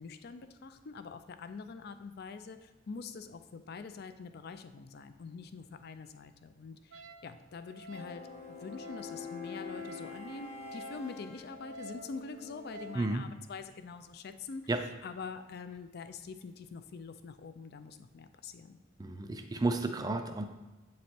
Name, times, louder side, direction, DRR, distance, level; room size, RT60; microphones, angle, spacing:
voice 1, 0.0-18.8, left 4 dB, 50° left, 10 dB, 0.4 m, -45 dB
Wind instrument woodwind instrument, 6.9-13.1, equal, 85° right, 0.4 m, -51 dB
sound 1, 7.9-12.9, left 4 dB, 35° left, 0.9 m, -46 dB
voice 2, 19.0-20.4, right 2 dB, 20° right, 7 dB, 0.4 m, -32 dB
7.9 x 3.2 x 4.3 m, 1.2 s
head